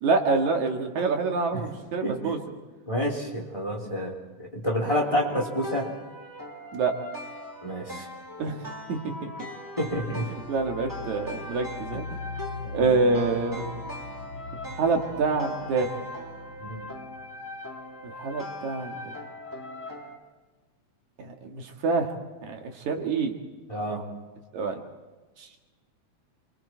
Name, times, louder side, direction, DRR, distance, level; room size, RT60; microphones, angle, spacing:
voice 1, 0.0-2.4 6.7-7.0 8.4-8.6 8.9-9.3 10.5-12.2 12.6-13.6 14.8-15.9 18.0-19.0 21.2-22.1 22.4-23.3 24.5-24.7 25.4-25.6, right 4 dB, 70° right, 3 dB, 3.2 m, -26 dB
voice 2, 2.9-4.1 4.4-5.9 7.6-8.1 9.8-10.3 11.9-12.0 12.7-13.0 16.6-16.8 23.7-24.1, equal, 10° left, 0 dB, 3.5 m, -29 dB
sound 1, 4.9-20.2, left 1 dB, 5° right, 1.9 m, -40 dB
sound 2, 9.8-18.5, left 3 dB, 60° left, 3.8 m, -42 dB
27.5 x 24.0 x 4.5 m, 1.3 s
omnidirectional pair, 3.4 m